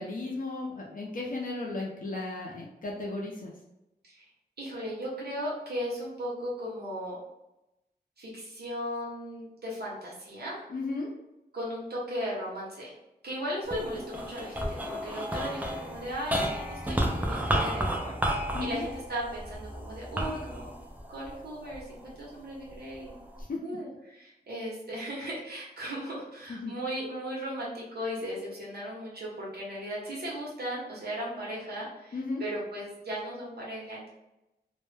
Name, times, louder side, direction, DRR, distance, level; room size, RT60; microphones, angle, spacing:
voice 1, 0.0-3.5 10.7-11.1 18.5-18.9 23.4-23.6 26.5-26.7 32.1-32.4, left 3 dB, 55° left, -2 dB, 0.5 m, -35 dB
voice 2, 4.6-7.2 8.2-10.7 11.5-12.9 13.2-20.7 21.1-23.2 23.6-34.1, equal, 70° right, -5 dB, 0.8 m, -37 dB
sound 1, 13.6-22.1 22.7-23.4, equal, 10° right, 0.3 m, -32 dB
2.1 x 2.0 x 3.1 m, 0.92 s
wide cardioid pair, 130°, 17 cm